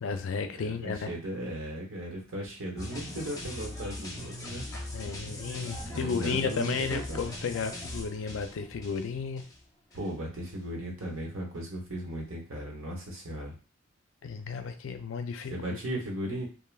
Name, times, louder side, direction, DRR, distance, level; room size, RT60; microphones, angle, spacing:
voice 1, 0.0-1.1 4.9-9.4 14.2-16.0, left 5 dB, 70° left, 8 dB, 0.4 m, -33 dB
voice 2, 0.5-4.7 5.8-7.2 9.9-13.5 15.5-16.5, right 1 dB, 85° right, 0 dB, 0.9 m, -36 dB
sound 1, 2.8-9.6 9.9-10.1, left 1 dB, 15° left, 0.5 m, -40 dB
3.2 x 2.0 x 2.3 m, 0.34 s
head